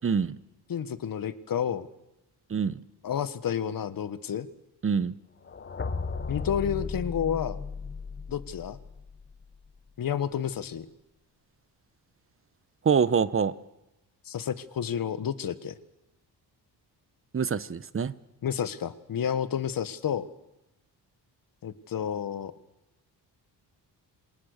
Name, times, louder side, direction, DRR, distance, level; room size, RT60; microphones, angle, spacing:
voice 1, 0.0-0.4 2.5-2.8 4.8-5.1 12.8-13.5 17.3-18.1, right 6 dB, 30° right, 16 dB, 1.1 m, -25 dB
voice 2, 0.7-1.9 3.0-4.5 6.3-7.6 8.3-8.8 10.0-10.9 14.2-15.7 18.4-20.3 21.6-22.5, left 8 dB, 55° left, 14 dB, 1.6 m, -30 dB
sound 1, 5.4-9.4, left 4 dB, 30° left, 1.6 m, -35 dB
27.5 x 26.5 x 6.7 m, 0.95 s
cardioid pair, 125°, 41 cm